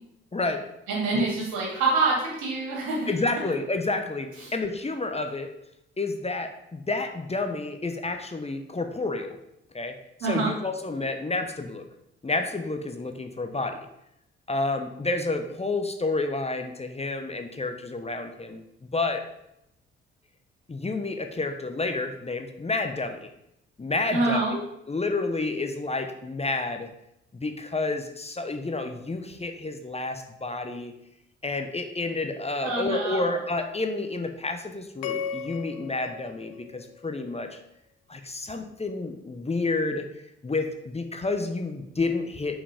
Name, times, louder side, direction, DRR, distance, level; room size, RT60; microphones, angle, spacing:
voice 1, 0.3-0.7 1.1-1.3 3.1-5.5 6.0-9.4 9.7-9.9 10.3-11.8 12.2-13.8 14.5-19.3 20.7-23.3 23.8-26.9 27.3-30.9 31.4-37.6 38.1-40.1 40.4-42.6, left 3 dB, 20° left, 6 dB, 0.9 m, -30 dB
voice 2, 0.9-3.1 4.4-4.5 10.2-10.5 24.1-24.5 32.6-33.3, right 3 dB, 75° right, -3 dB, 2.4 m, -26 dB
sound 1, 35.0-37.4, left 7 dB, 80° left, 0.5 m, -36 dB
5.5 x 4.8 x 5.0 m, 0.82 s
hypercardioid pair, 45°, 30 cm